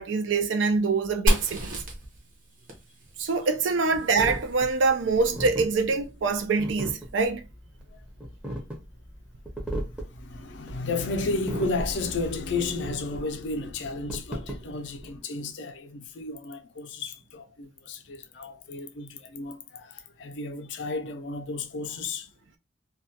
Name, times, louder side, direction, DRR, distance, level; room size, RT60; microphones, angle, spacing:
voice 1, 0.0-1.8 3.2-7.4, right 4 dB, 80° right, 0.4 m, -25 dB
Fire, 1.3-4.9, equal, 45° right, 0.7 m, -30 dB
sound 1, 4.2-15.1, right 1 dB, 5° right, 0.5 m, -36 dB
voice 2, 9.6-22.3, left 3 dB, 65° left, 0.4 m, -33 dB
2.3 x 2.2 x 2.7 m
head